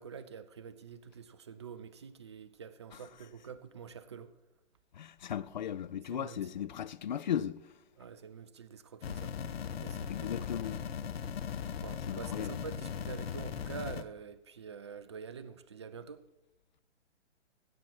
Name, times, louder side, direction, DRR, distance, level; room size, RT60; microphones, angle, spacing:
voice 1, 0.0-4.3 6.1-6.4 8.0-9.4 9.7-10.7 11.8-16.2, right 6 dB, 25° right, 0.4 m, -47 dB
voice 2, 4.9-7.7 10.1-10.8 12.1-12.6, left 9 dB, 40° left, 0.4 m, -36 dB
sound 1, 9.0-14.0, left 7 dB, 55° left, 0.9 m, -38 dB
16.5 x 7.3 x 4.6 m
figure-of-eight pair, 135°, 36 cm